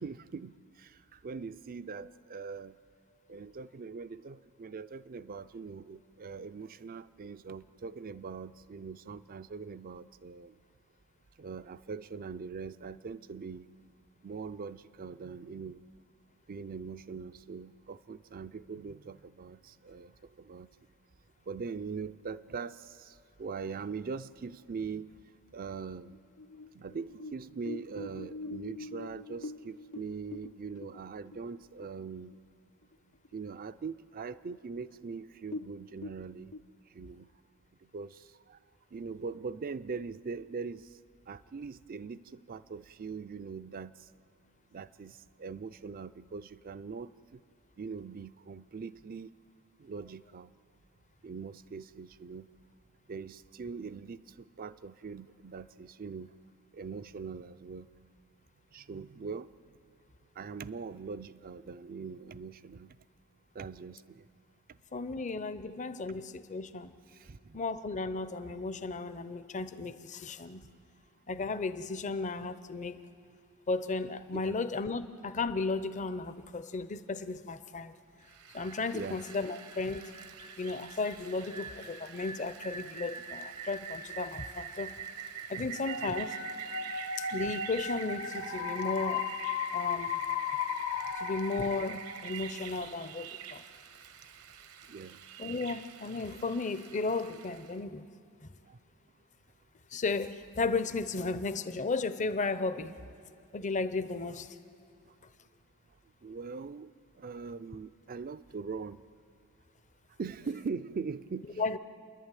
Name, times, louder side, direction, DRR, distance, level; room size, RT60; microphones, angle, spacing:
voice 1, 0.0-2.8 3.3-10.6 11.4-13.7 14.2-15.8 16.5-20.1 20.4-20.7 21.5-25.1 25.5-26.1 26.7-32.3 33.3-36.5 36.9-37.3 37.9-38.6 38.9-40.9 41.3-43.9 44.7-47.4 47.8-49.3 49.8-50.5 51.2-52.5 53.1-56.3 56.7-57.9 58.7-59.5 60.4-63.0 63.5-64.3 67.1-67.6 74.3-74.6 78.9-79.2 85.6-85.7 94.9-95.2 98.7-98.8 106.2-106.9 107.2-109.0 110.2-111.6, right 5 dB, 40° right, 15 dB, 0.4 m, -42 dB
sound 1, 26.1-32.0 32.3-32.4 32.8-33.3 33.8-33.9 34.5-34.6 34.9-35.0 35.4-36.6, left 2 dB, 85° left, 0.9 m, -44 dB
voice 2, 64.9-66.9 67.5-70.6 71.3-73.0 73.7-77.9 78.5-80.1 80.6-85.0 85.5-86.4 87.2-89.3 89.7-90.2 91.2-93.6 95.4-98.0 99.9-103.0 103.5-104.5 111.6-111.8, left 3 dB, 35° left, 13 dB, 0.6 m, -34 dB
Rain, 78.3-97.7, right 8 dB, 75° right, 1.0 m, -45 dB
sound 2, 85.7-92.6, left 7 dB, 55° left, 1.0 m, -36 dB
29.5 x 11.0 x 9.1 m, 2.4 s
head